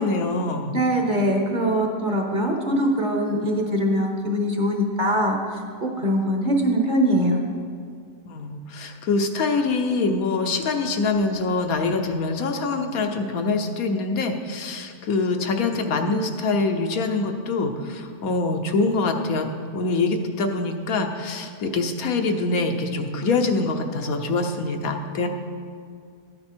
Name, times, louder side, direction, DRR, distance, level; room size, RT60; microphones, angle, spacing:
voice 1, 0.0-0.8 8.3-19.5 19.7-25.3, left 3 dB, 70° left, 5 dB, 1.3 m, -24 dB
voice 2, 0.7-7.4, equal, 35° right, 2 dB, 1.2 m, -22 dB
13.0 x 9.6 x 4.4 m, 2.1 s
omnidirectional pair, 1.6 m